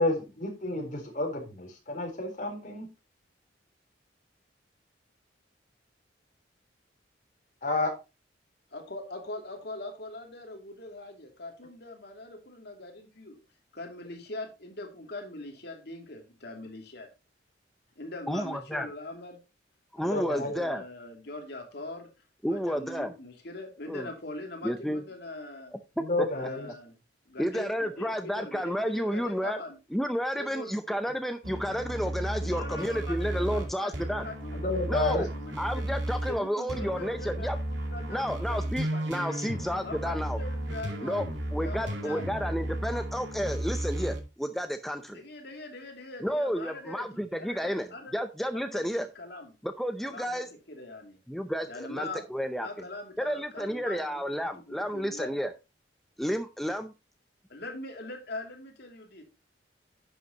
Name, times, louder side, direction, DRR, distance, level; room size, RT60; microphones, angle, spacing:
voice 1, 0.0-0.9 1.2-2.9 7.6-8.0 20.0-20.5 26.0-26.7 34.5-35.2, left 2 dB, 45° left, 3.7 m, -30 dB
voice 2, 8.7-13.4 13.7-17.1 18.0-19.4 20.0-22.1 22.4-25.7 26.3-27.0 27.3-29.8 30.4-31.0 32.4-34.6 35.1-39.4 39.8-42.3 45.1-47.1 47.4-48.1 48.5-49.5 50.0-51.2 51.7-52.2 52.6-55.5 57.5-59.2, left 2 dB, 60° left, 2.6 m, -42 dB
voice 3, 18.3-18.9 19.9-20.8 22.4-23.1 23.9-24.1 24.6-25.0 26.2-26.3 27.4-29.6 29.9-34.3 34.9-35.3 35.6-37.6 38.1-40.4 41.0-41.2 41.5-45.2 46.2-47.9 48.1-49.1 49.6-50.5 51.3-52.7 53.2-55.5 56.2-56.9, equal, ahead, 0.6 m, -31 dB
sound 1, 31.4-36.4 36.7-44.2, right 1 dB, 80° right, 2.5 m, -34 dB
11.0 x 7.9 x 2.9 m
head